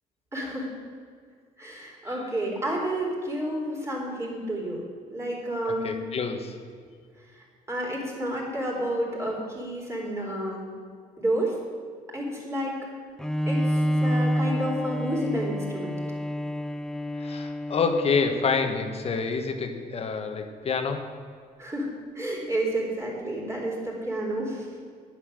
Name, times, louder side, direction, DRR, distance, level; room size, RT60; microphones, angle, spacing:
voice 1, 0.3-0.7 1.6-4.8 5.1-6.0 7.4-10.7 11.2-11.6 12.1-12.8 13.5-15.9 21.6-24.8, right 1 dB, 20° right, -3 dB, 3.6 m, -30 dB
voice 2, 5.7-6.5 17.2-21.1, left 5 dB, 45° left, 6 dB, 1.2 m, -27 dB
Bowed string instrument, 13.2-18.8, equal, 5° left, 0.5 m, -28 dB
10.0 x 9.2 x 6.4 m, 2.1 s
cardioid pair, 110°, 15 cm